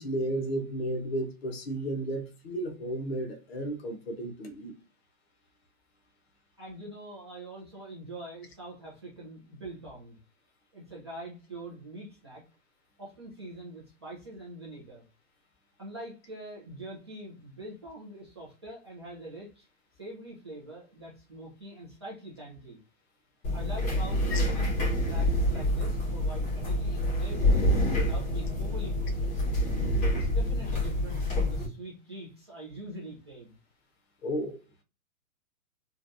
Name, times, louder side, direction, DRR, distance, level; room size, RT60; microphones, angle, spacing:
voice 1, 0.0-4.7 24.3-24.4 34.2-34.6, right 1 dB, 45° left, 0.9 m, -33 dB
voice 2, 6.6-10.2 10.7-12.4 13.0-15.0 15.8-19.7 19.9-22.8 23.5-27.6 28.0-29.4 30.1-33.6, right 1 dB, 20° right, 0.4 m, -44 dB
sound 1, 23.4-31.7, left 1 dB, 25° left, 1.3 m, -27 dB
3.2 x 2.3 x 2.6 m
hypercardioid pair, 160°, 43 cm